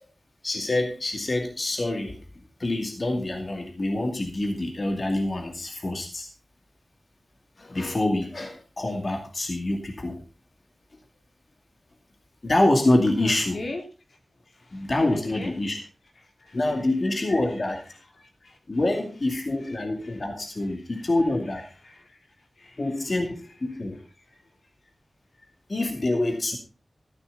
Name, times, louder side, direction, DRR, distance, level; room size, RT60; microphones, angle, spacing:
voice 1, 0.4-2.2 2.6-6.3 7.6-10.2 12.4-13.6 14.7-15.8 16.5-17.8 18.7-21.6 22.8-24.0 25.7-26.6, left 2 dB, 45° left, 2.4 m, -26 dB
voice 2, 13.2-13.8 14.1-14.2 14.5-15.6 16.4-16.6 18.2-18.6 19.7-19.8 20.0-20.2 20.6-21.1 21.8-22.2 22.6-23.1 24.2-24.4 25.4-25.5, left 2 dB, 75° left, 3.2 m, -41 dB
13.5 x 11.0 x 4.0 m
wide cardioid pair, 75°, 0 cm